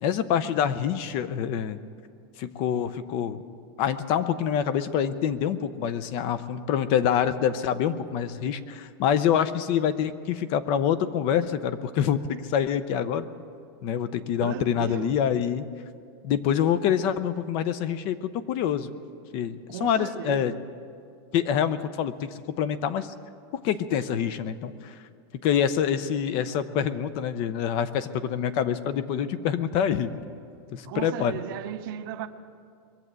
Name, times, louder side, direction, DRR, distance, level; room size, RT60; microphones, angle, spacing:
voice 1, 0.0-1.8 2.4-3.4 3.8-13.2 13.8-15.7 16.2-18.9 19.3-20.5 21.3-22.3 22.6-23.1 23.5-24.9 25.4-30.2 30.7-31.4, left 9 dB, 40° left, 0.6 m, -26 dB
voice 2, 14.4-15.2 19.7-20.6 30.9-32.3, right 12 dB, 55° right, 0.8 m, -36 dB
22.0 x 7.5 x 8.1 m
supercardioid pair, 160°, 13 cm